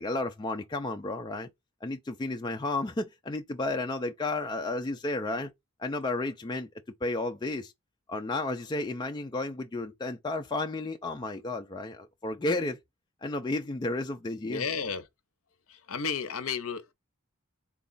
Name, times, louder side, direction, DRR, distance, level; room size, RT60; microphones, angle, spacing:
voice 1, 0.0-1.5 1.8-5.5 5.8-6.7 7.0-7.7 8.1-12.8 13.2-14.6, left 2 dB, 20° left, 0.3 m, -32 dB
voice 2, 14.4-15.1 15.7-16.9, left 5 dB, 65° left, 0.7 m, -33 dB
3.8 x 2.4 x 3.8 m
head